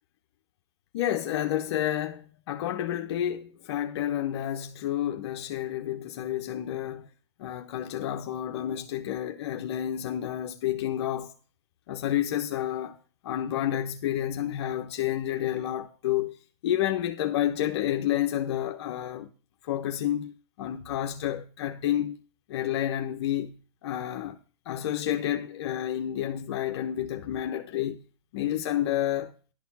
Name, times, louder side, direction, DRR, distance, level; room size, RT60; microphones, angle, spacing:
voice 1, 0.9-7.1 7.4-11.3 11.9-13.0 13.2-16.4 16.6-19.3 19.6-22.2 22.5-24.4 24.7-28.0 28.3-29.4, left 11 dB, 60° left, 0.7 m, -30 dB
11.5 x 4.3 x 6.9 m
hypercardioid pair, 110°, 15 cm